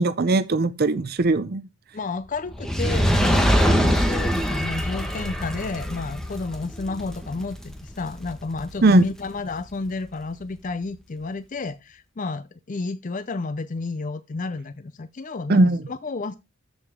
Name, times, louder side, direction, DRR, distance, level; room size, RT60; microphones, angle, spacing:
voice 1, 0.0-1.6 8.8-9.0 15.5-15.8, right 2 dB, 45° right, 0.5 m, -19 dB
voice 2, 1.9-15.6 15.9-16.3, left 3 dB, 35° left, 0.5 m, -31 dB
Fire, 2.5-8.9 9.6-9.7, equal, ahead, 1.3 m, -24 dB
13.5 x 5.1 x 3.6 m
head